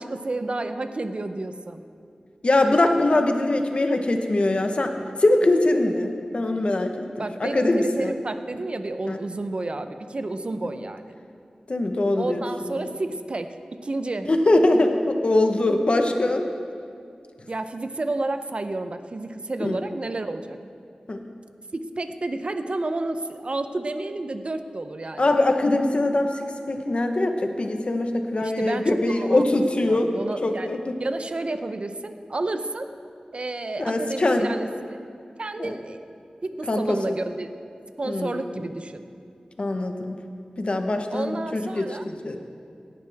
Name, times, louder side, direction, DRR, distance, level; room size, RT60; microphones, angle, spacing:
voice 1, 0.0-1.8 7.2-11.2 12.2-14.3 17.5-20.6 21.7-25.4 28.4-29.4 29.8-32.9 33.3-35.0 35.4-36.0 36.4-37.5 38.0-39.0 41.1-42.1, right 2 dB, 50° right, 9 dB, 0.7 m, -31 dB
voice 2, 2.4-4.9 5.2-8.1 9.1-9.2 11.7-12.4 14.3-16.5 19.6-19.8 21.1-21.2 25.2-30.1 30.4-31.0 33.8-34.5 35.6-35.7 36.7-37.0 38.0-38.4 39.6-40.2 40.6-42.4, left 2 dB, 50° left, 5 dB, 1.1 m, -22 dB
18.0 x 11.0 x 3.5 m, 2.4 s
wide cardioid pair, 65°, 2 cm